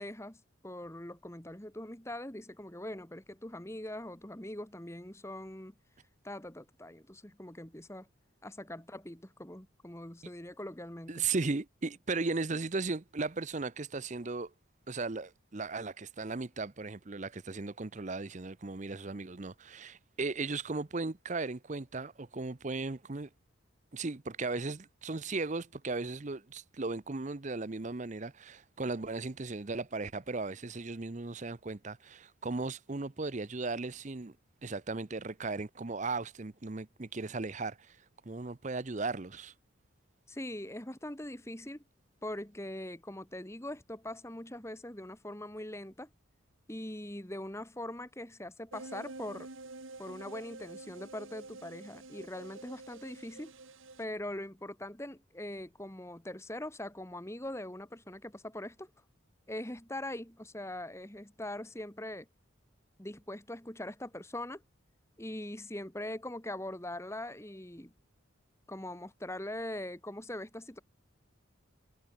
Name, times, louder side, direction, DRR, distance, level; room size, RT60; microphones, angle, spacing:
voice 1, 0.0-5.7 6.2-8.1 8.4-11.3 40.3-41.8 42.2-46.1 46.7-49.5 50.0-53.5 54.0-58.9 59.5-62.3 63.0-64.6 65.2-67.9 68.7-70.8, left 1 dB, 15° left, 1.7 m, -42 dB
voice 2, 11.1-14.5 14.9-23.3 23.9-34.3 34.6-38.0 38.2-39.5, right 3 dB, 35° right, 0.7 m, -36 dB
sound 1, 48.7-54.1, right 3 dB, 75° right, 2.5 m, -48 dB
head